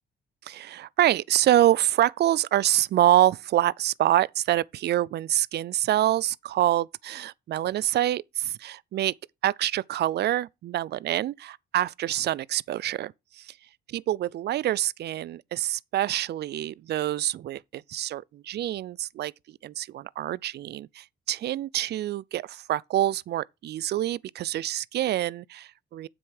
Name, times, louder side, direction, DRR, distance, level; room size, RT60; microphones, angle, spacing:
voice 1, 0.4-9.1 9.4-13.6 13.9-26.1, right 13 dB, 55° right, 0.4 m, -26 dB
7.8 x 6.2 x 4.7 m
cardioid pair, 90°, 20 cm